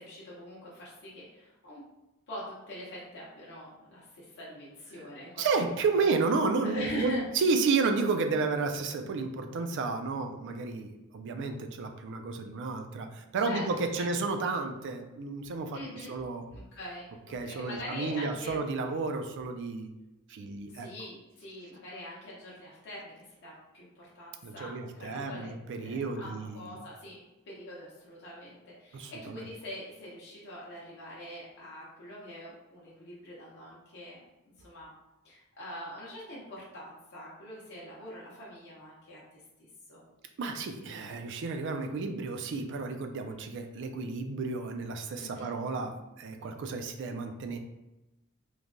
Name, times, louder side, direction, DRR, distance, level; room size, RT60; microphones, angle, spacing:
voice 1, 0.0-1.8 2.3-5.9 6.6-7.2 13.4-14.0 15.7-16.1 16.5-18.6 20.7-25.5 25.8-34.2 34.6-34.9 35.2-40.0 45.2-45.5, left 1 dB, 55° left, -6 dB, 0.6 m, -43 dB
voice 2, 5.4-15.8 16.1-16.4 17.3-19.9 20.3-20.9 24.4-26.8 28.9-29.4 40.4-47.6, right 4 dB, 55° right, 6 dB, 0.3 m, -32 dB
3.1 x 2.1 x 2.5 m, 1.0 s
head